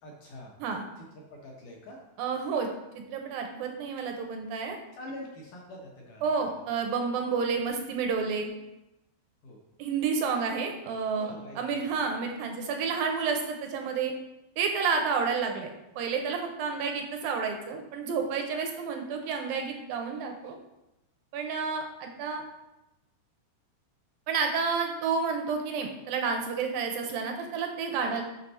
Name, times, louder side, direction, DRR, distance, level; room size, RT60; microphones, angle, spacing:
voice 1, 0.0-0.6 1.0-1.1 1.3-2.0 5.0-6.2 9.4-9.6 11.1-11.8 28.0-28.2, left 1 dB, 65° left, -1 dB, 2.1 m, -44 dB
voice 2, 2.2-2.7 2.9-4.8 6.2-8.5 9.8-14.1 14.6-15.7 16.0-20.6 21.3-22.4 24.3-28.2, right 5 dB, 80° right, 3 dB, 2.1 m, -30 dB
6.9 x 5.8 x 4.1 m, 0.94 s
omnidirectional pair, 4.7 m